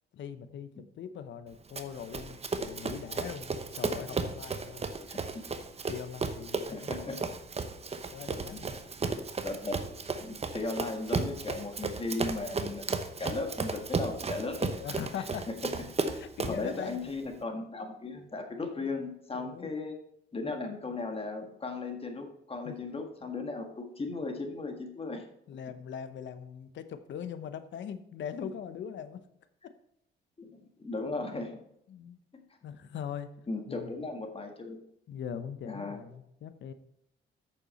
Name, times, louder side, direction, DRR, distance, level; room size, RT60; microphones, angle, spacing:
voice 1, 0.1-4.9 5.9-7.2 8.1-8.8 14.8-15.5 16.1-17.1 19.3-19.9 22.6-22.7 25.5-29.2 29.6-29.7 31.9-32.2 32.6-33.3 33.7-33.9 35.1-36.7, left 8 dB, 70° left, 11 dB, 0.9 m, -41 dB
Run, 1.7-16.7, right 4 dB, 30° right, 1.0 m, -34 dB
voice 2, 5.1-5.4 6.7-7.2 9.4-9.9 10.2-14.8 15.2-15.5 16.5-20.0 20.3-25.2 28.4-28.5 30.4-31.6 32.3-32.4 33.5-34.8 35.7-36.0, left 3 dB, 30° left, 4 dB, 1.6 m, -37 dB
8.5 x 6.9 x 4.2 m, 0.75 s
cardioid pair, 90°, 20 cm